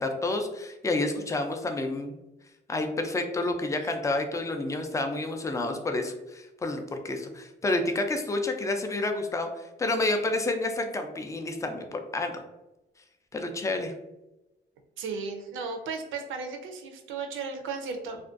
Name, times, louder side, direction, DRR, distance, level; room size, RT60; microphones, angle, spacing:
voice 1, 0.0-2.2 2.7-12.4 13.3-13.9, left 2 dB, 15° left, 5 dB, 0.3 m, -29 dB
voice 2, 15.0-18.2, right 4 dB, 80° right, 5 dB, 0.5 m, -35 dB
2.4 x 2.2 x 2.4 m, 0.99 s
cardioid pair, 90°, 20 cm